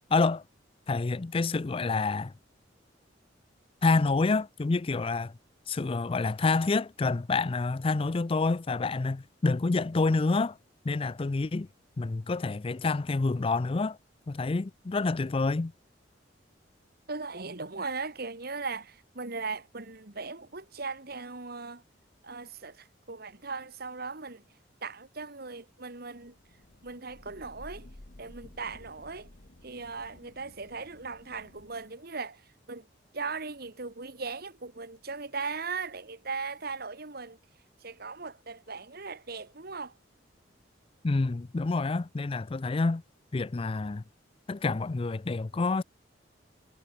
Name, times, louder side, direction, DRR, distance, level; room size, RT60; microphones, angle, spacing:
voice 1, 0.1-0.4 0.9-2.3 3.8-5.3 5.7-10.6 10.8-11.7 12.0-14.0 14.3-15.7 41.0-43.0 43.3-44.0 44.5-45.8, left 3 dB, 30° left, 0.4 m, -28 dB
voice 2, 17.1-21.8 22.2-24.4 24.8-26.3 26.8-27.9 28.2-29.3 29.6-32.4 32.7-32.9 33.1-37.4 37.8-39.9, right 4 dB, 55° right, 2.1 m, -38 dB
Thunder / Rain, 26.3-32.0, left 1 dB, 50° left, 1.5 m, -53 dB
head